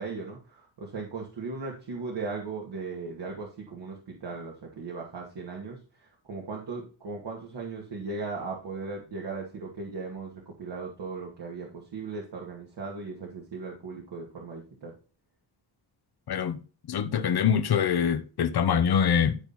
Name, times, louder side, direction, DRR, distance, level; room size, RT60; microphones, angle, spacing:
voice 1, 0.0-14.9, right 4 dB, 65° right, 2.5 m, -37 dB
voice 2, 16.3-16.6 16.9-19.4, left 7 dB, 55° left, 1.1 m, -24 dB
12.5 x 4.3 x 4.3 m
cardioid pair, 80°, 44 cm